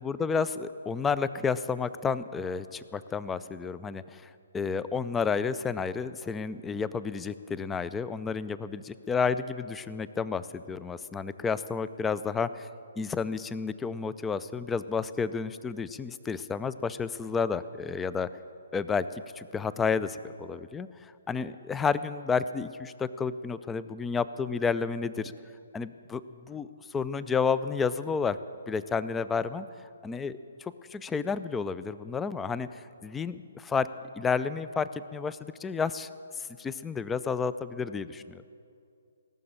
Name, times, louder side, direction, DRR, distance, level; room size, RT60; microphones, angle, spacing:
voice 1, 0.0-12.7 13.0-18.3 18.7-25.3 25.7-26.2 26.5-28.4 28.7-29.7 30.0-33.9 34.1-36.1 36.4-38.4, left 5 dB, 10° left, 15 dB, 0.4 m, -31 dB
18.0 x 6.8 x 8.7 m, 2.5 s
figure-of-eight pair, 135°, 0 cm